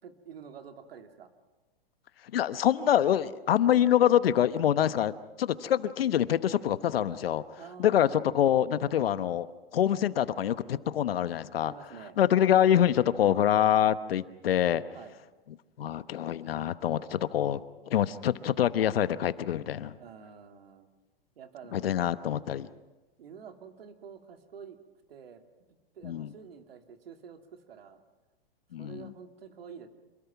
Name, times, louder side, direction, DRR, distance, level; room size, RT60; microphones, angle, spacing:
voice 1, 0.0-1.3 3.5-3.9 7.6-8.2 11.6-12.2 14.9-15.2 19.8-20.9 21.4-21.9 23.2-24.8 25.1-25.4 25.9-28.0 28.8-29.9, right 7 dB, 75° right, 5 dB, 2.5 m, -48 dB
voice 2, 2.3-5.1 5.4-7.4 7.8-9.5 9.7-11.7 12.2-14.8 15.8-17.6 17.9-19.9 21.7-22.7 26.0-26.3 28.7-29.0, left 10 dB, 75° left, 14 dB, 1.1 m, -25 dB
27.0 x 21.0 x 5.9 m, 1.2 s
hypercardioid pair, 125°, 30 cm